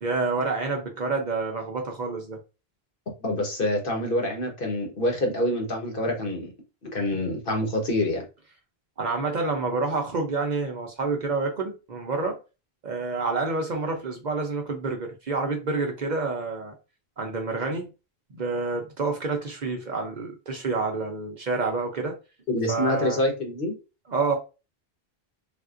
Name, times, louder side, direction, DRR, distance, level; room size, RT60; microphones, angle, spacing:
voice 1, 0.0-2.4 9.0-12.4 12.8-16.7 17.2-17.9 18.3-22.1 22.7-23.2 24.1-24.4, right 3 dB, 50° right, 0.7 m, -28 dB
voice 2, 3.2-6.5 6.9-8.2 22.5-23.8, left 1 dB, 60° left, 1.2 m, -26 dB
3.6 x 2.5 x 2.4 m
omnidirectional pair, 1.1 m